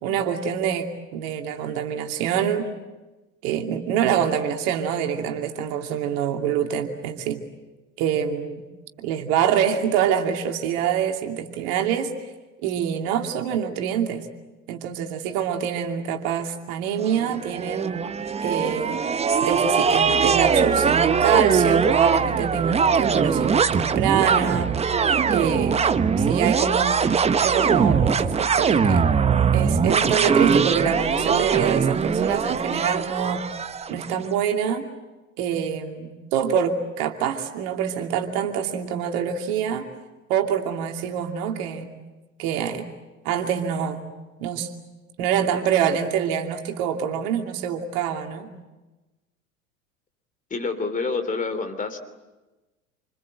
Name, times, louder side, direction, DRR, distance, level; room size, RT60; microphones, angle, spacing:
voice 1, 0.0-2.7 3.4-7.4 8.0-8.6 9.0-12.1 12.6-14.2 14.7-17.9 18.4-19.0 19.4-24.7 25.3-25.9 26.2-27.0 27.4-29.1 29.5-33.4 33.9-34.9 35.4-39.9 40.3-41.9 42.4-42.9 43.2-44.0 44.4-44.7 45.2-48.5, right 8 dB, 50° right, 4 dB, 2.7 m, -25 dB
sound 1, 17.1-34.1, right 6 dB, 15° right, 1.0 m, -21 dB
voice 2, 50.5-52.0, left 4 dB, 20° left, 8 dB, 3.3 m, -27 dB
28.5 x 26.5 x 7.9 m, 1.1 s
figure-of-eight pair, 80°, 41 cm